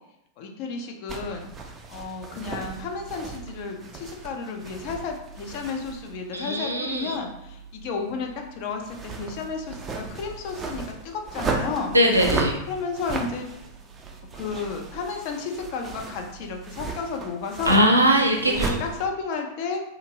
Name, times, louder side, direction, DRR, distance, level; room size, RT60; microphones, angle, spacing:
voice 1, 0.4-1.5 1.9-12.0 12.7-13.5 14.3-17.8 18.4-19.8, left 4 dB, 45° left, 3 dB, 0.4 m, -32 dB
sound 1, 1.1-19.0, right 4 dB, 20° right, 0.4 m, -36 dB
voice 2, 6.3-7.2 11.9-12.6 17.7-18.8, equal, 85° right, 1 dB, 0.5 m, -20 dB
2.5 x 2.5 x 2.8 m, 0.84 s
figure-of-eight pair, 90°, 0 cm